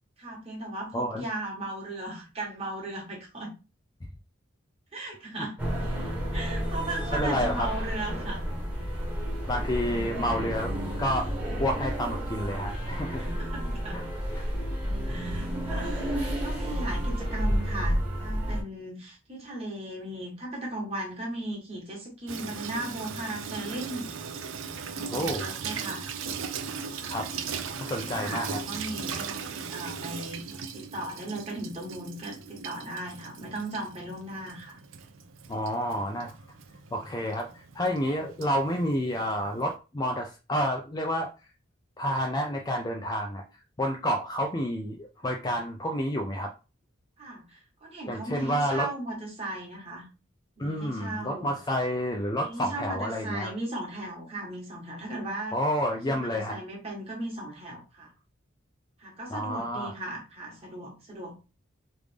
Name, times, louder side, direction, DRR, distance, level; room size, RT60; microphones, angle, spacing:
voice 1, 0.2-3.5 4.9-5.6 6.3-8.4 13.2-14.0 15.1-24.1 24.9-26.1 26.9-27.2 28.0-34.8 47.2-50.1 50.6-51.5 52.5-55.6 56.1-58.1 59.0-61.4, right 1 dB, 30° right, -2 dB, 1.3 m, -37 dB
voice 2, 0.9-1.2 5.4-5.5 7.1-7.7 9.5-11.3 11.6-13.3 13.9-14.0 14.3-14.4 25.1-25.5 27.1-27.3 27.7-28.6 35.5-36.3 36.9-41.5 42.0-46.5 48.1-48.9 50.6-53.5 55.5-56.6 59.3-59.9, equal, 20° left, 1 dB, 0.4 m, -29 dB
sound 1, 5.6-18.6, equal, 10° right, 1.0 m, -31 dB
Water tap faucet / Sink (filling or washing), 22.3-39.7, right 6 dB, 80° right, 0.5 m, -38 dB
3.2 x 2.5 x 3.4 m, 0.31 s
head